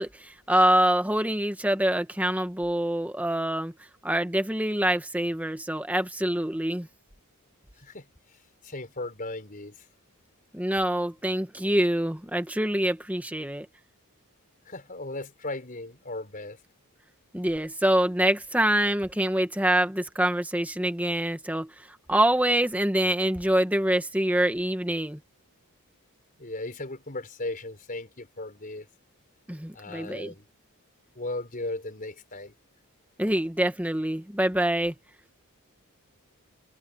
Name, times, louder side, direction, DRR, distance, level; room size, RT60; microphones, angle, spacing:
voice 1, 0.0-3.7 4.0-6.9 10.5-13.7 17.3-21.7 22.1-25.2 29.5-30.3 33.2-34.9, right 1 dB, 5° right, 1.5 m, -25 dB
voice 2, 8.6-9.7 14.7-16.6 26.4-28.9 29.7-30.4 31.1-32.5, left 2 dB, 40° left, 4.8 m, -36 dB
head